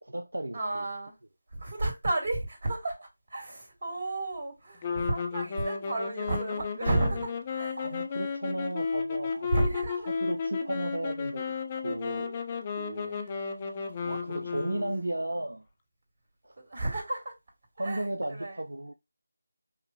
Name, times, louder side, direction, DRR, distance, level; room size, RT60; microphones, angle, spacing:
voice 1, 0.0-0.9 7.8-9.5 10.1-12.4 12.8-13.2 14.0-15.6 16.4-16.6 17.8-18.9, right 1 dB, 75° right, 0.6 m, -35 dB
voice 2, 0.5-1.1 1.5-7.8 8.2-8.3 9.5-10.1 12.9-14.9 15.4-15.5 16.6-17.3 17.8-18.6, right 2 dB, 50° right, 2.8 m, -33 dB
sound 1, 4.8-15.2, left 5 dB, 25° left, 0.6 m, -33 dB
5.7 x 2.9 x 2.8 m
figure-of-eight pair, 160°, 0 cm